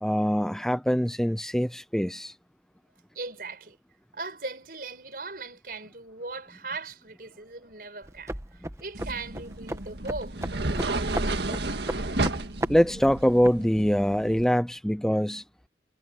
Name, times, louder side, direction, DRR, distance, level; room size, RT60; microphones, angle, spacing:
voice 1, 0.0-2.3 12.7-15.4, equal, 5° left, 0.5 m, -24 dB
voice 2, 3.1-3.8 4.1-10.4, right 3 dB, 55° right, 6.1 m, -39 dB
sound 1, 8.0-13.6, right 1 dB, 15° right, 1.4 m, -36 dB
sound 2, 8.9-14.4, right 2 dB, 70° right, 1.8 m, -32 dB
head